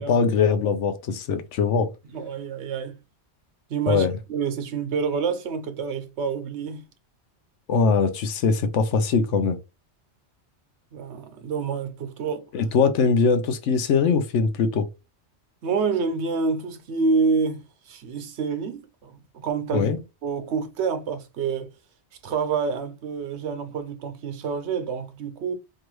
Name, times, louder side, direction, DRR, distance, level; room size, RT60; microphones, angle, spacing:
voice 1, 0.0-1.9 3.9-4.1 7.7-9.6 12.5-14.9 19.7-20.0, left 5 dB, 85° left, 1.0 m, -21 dB
voice 2, 2.1-3.0 3.7-6.9 10.9-12.5 15.6-19.9 20.2-21.7 22.2-25.5, right 5 dB, 75° right, 1.0 m, -28 dB
4.6 x 2.4 x 3.1 m
omnidirectional pair, 1.2 m